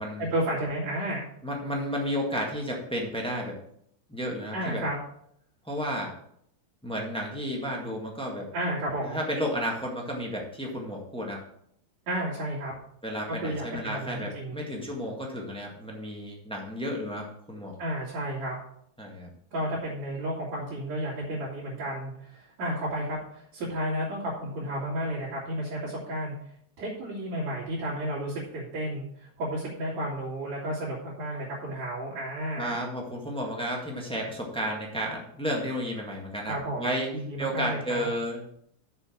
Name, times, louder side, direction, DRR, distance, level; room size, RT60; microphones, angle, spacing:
voice 1, 0.2-1.2 4.5-5.0 8.5-9.2 12.1-12.7 13.3-14.6 17.8-18.6 19.5-26.3 26.8-32.8 36.5-38.1, right 1 dB, 60° right, -8 dB, 4.0 m, -32 dB
voice 2, 1.4-3.6 4.1-4.8 5.6-6.1 6.8-8.5 9.0-11.4 13.0-17.7 19.0-19.3 32.6-37.1 37.4-38.5, equal, 5° left, -1 dB, 0.9 m, -32 dB
6.8 x 6.8 x 7.4 m, 0.69 s
omnidirectional pair, 3.5 m